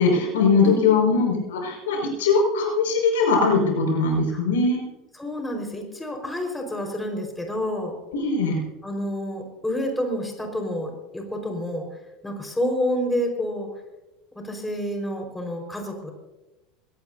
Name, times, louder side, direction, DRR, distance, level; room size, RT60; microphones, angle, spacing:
voice 1, 0.0-4.8 8.1-8.6, left 4 dB, 75° left, 0 dB, 5.6 m, -21 dB
voice 2, 0.6-1.1 5.2-8.0 8.8-11.9 12.2-13.7 14.3-16.1, left 1 dB, 10° left, 2 dB, 4.9 m, -29 dB
22.5 x 17.5 x 2.8 m, 1.0 s
hypercardioid pair, 80°, 0 cm